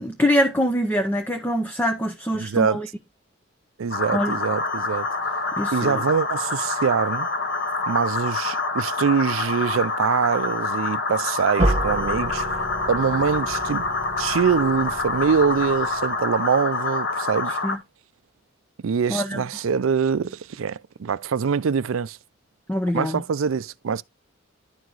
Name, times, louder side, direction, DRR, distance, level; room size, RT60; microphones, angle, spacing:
voice 1, 0.0-2.9 4.1-4.3 5.6-6.0 17.6-17.8 19.1-19.4 22.7-23.2, equal, 10° left, 0.6 m, -24 dB
voice 2, 2.3-2.8 3.8-5.1 5.7-7.3 7.9-13.9 14.2-17.6 18.8-22.2 22.9-24.0, right 6 dB, 80° right, 0.4 m, -24 dB
sound 1, 3.9-17.8, left 3 dB, 60° left, 1.4 m, -27 dB
sound 2, 11.6-16.4, right 1 dB, 35° right, 1.3 m, -30 dB
11.5 x 4.7 x 3.9 m
head